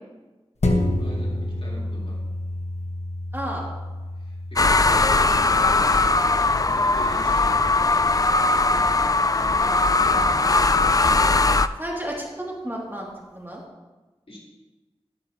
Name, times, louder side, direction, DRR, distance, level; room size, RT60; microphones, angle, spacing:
sound 1, 0.6-9.4 9.9-10.0, left 1 dB, 80° left, 1.4 m, -30 dB
voice 1, 1.0-2.2 4.1-6.1 6.5-7.7 9.3-10.1 14.3-14.4, equal, 60° left, -6 dB, 4.2 m, -40 dB
voice 2, 3.3-3.7 11.8-13.6, right 1 dB, 20° right, -4 dB, 2.8 m, -32 dB
sound 2, 4.6-11.7, left 3 dB, 35° left, 0.4 m, -19 dB
12.5 x 12.0 x 3.1 m, 1.2 s
wide cardioid pair, 50°, 11 cm